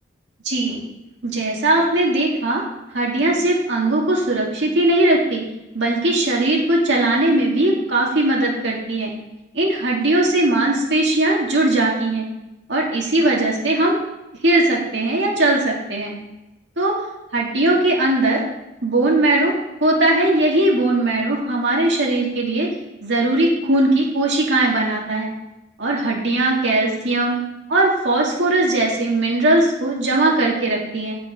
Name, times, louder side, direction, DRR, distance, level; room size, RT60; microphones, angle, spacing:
voice 1, 0.4-0.8 1.2-2.6 2.9-5.4 5.7-9.1 9.5-12.2 12.7-14.0 14.4-16.1 16.8-17.0 17.3-18.4 18.8-19.5 19.8-22.7 23.0-25.3 25.8-27.4 27.7-31.1, right 2 dB, 70° right, -3 dB, 2.3 m, -19 dB
8.0 x 5.8 x 5.4 m, 0.96 s
head